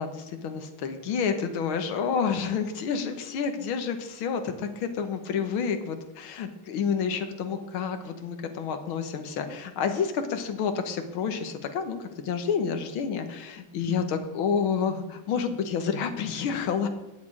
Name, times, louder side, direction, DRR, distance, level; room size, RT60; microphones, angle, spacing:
voice 1, 0.0-16.9, left 6 dB, 75° left, 7 dB, 2.1 m, -29 dB
9.4 x 8.7 x 8.7 m, 1.1 s
omnidirectional pair, 2.3 m